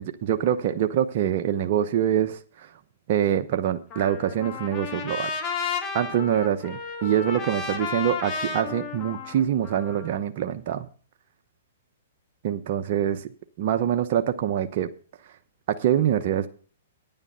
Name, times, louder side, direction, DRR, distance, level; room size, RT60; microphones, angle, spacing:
voice 1, 0.0-2.7 3.1-5.3 5.9-10.9 12.4-13.3 13.6-14.9 15.7-16.5, right 10 dB, 50° right, 0.9 m, -25 dB
Trumpet, 3.9-10.2, left 5 dB, 30° left, 2.1 m, -33 dB
9.9 x 9.0 x 5.6 m
hypercardioid pair, 135°, 0 cm